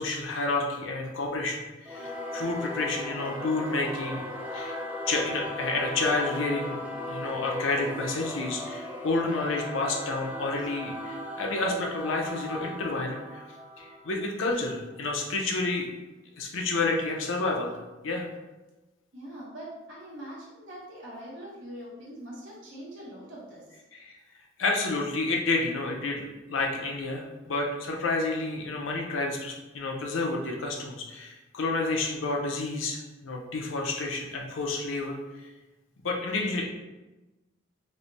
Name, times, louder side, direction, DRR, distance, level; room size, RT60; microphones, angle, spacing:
voice 1, 0.0-4.2 4.5-4.8 5.1-6.8 7.1-13.4 13.8-15.9 16.4-17.7 18.0-18.3 23.9-24.2 24.6-35.5 36.0-36.7, left 3 dB, 80° left, 1 dB, 0.6 m, -30 dB
Singing / Musical instrument, 1.9-14.8, left 1 dB, 5° right, 0.3 m, -37 dB
voice 2, 19.1-23.8, right 1 dB, 80° right, -6 dB, 1.2 m, -43 dB
3.2 x 2.1 x 3.9 m, 1.1 s
head